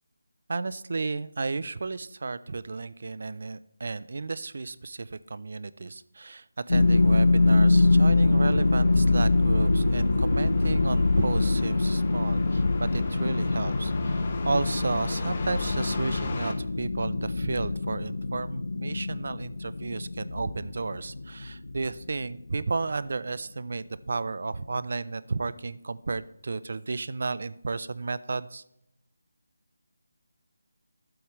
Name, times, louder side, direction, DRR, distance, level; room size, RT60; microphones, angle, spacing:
voice 1, 0.5-28.6, right 3 dB, 55° right, 17 dB, 0.5 m, -33 dB
sound 1, 6.7-22.6, left 2 dB, 85° left, 0.6 m, -24 dB
sound 2, 6.8-16.5, left 3 dB, 35° left, 1.0 m, -37 dB
12.5 x 7.9 x 3.2 m, 0.78 s
figure-of-eight pair, 170°, 0 cm